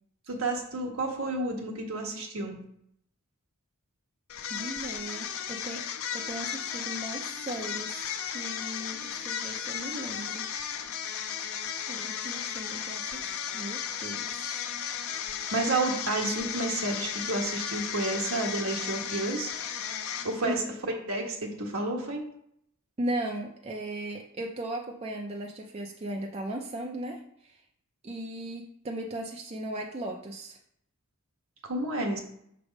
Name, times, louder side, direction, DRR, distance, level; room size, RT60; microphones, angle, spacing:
voice 1, 0.3-2.6 15.5-19.5 20.2-20.6 21.1-22.2 31.6-32.2, right 2 dB, 70° right, 1 dB, 1.3 m, -30 dB
sound 1, 4.3-20.6, left 8 dB, 70° left, 0.5 m, -35 dB
voice 2, 4.5-5.8 6.1-10.5 11.9-14.7 20.1-20.6 23.0-27.6 28.0-30.6, right 1 dB, 30° right, 1 dB, 0.5 m, -37 dB
6.1 x 3.4 x 5.1 m, 0.71 s
head